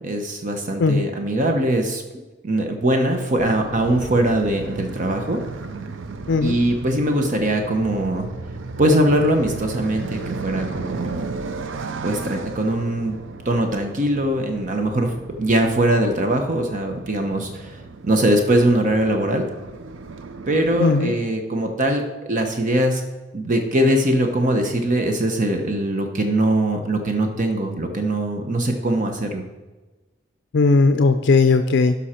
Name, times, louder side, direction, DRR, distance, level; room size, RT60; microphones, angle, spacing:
voice 1, 0.0-2.0 2.4-5.4 6.4-8.3 8.8-11.3 12.0-13.2 13.4-19.5 20.5-23.0 23.3-29.4, right 1 dB, 45° right, 4 dB, 0.9 m, -21 dB
sound 1, 3.4-21.1, right 4 dB, 80° right, 0.6 m, -35 dB
voice 2, 20.8-21.1 30.5-31.9, left 3 dB, 65° left, 8 dB, 0.4 m, -17 dB
12.5 x 5.6 x 4.3 m, 1.2 s
head